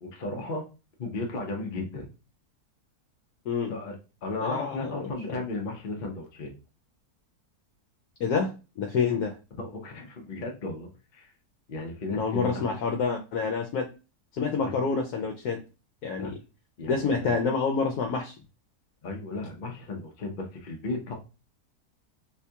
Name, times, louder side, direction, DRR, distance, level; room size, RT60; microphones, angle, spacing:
voice 1, 0.0-0.6 1.0-2.1 3.7-4.0 4.2-6.5 9.6-11.3 11.7-12.7 14.6-14.9 16.1-16.3 16.8-17.4 19.0-21.1, left 2 dB, 50° left, 1 dB, 0.5 m, -35 dB
voice 2, 4.4-5.4 8.2-9.4 12.1-13.9 14.3-15.6 16.0-16.3 16.9-18.3, left 5 dB, 80° left, 4 dB, 1.1 m, -28 dB
4.2 x 2.3 x 2.7 m, 0.31 s
omnidirectional pair, 1.6 m